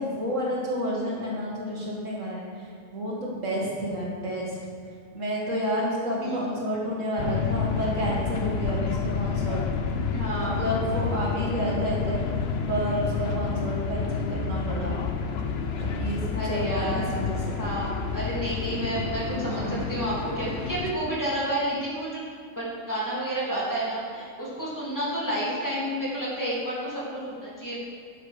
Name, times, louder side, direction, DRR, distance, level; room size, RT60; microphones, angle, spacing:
voice 1, 0.0-4.6 5.1-9.6 10.4-12.2 12.7-15.0 15.8-17.6 19.0-19.8, equal, 65° right, -4 dB, 2.2 m, -30 dB
sound 1, 7.2-20.9, left 5 dB, 55° left, 0.9 m, -29 dB
voice 2, 10.1-10.6 16.3-17.1 17.6-22.2 22.5-27.8, right 1 dB, 15° left, -8 dB, 3.1 m, -30 dB
12.0 x 7.0 x 5.0 m, 2.3 s
omnidirectional pair, 1.5 m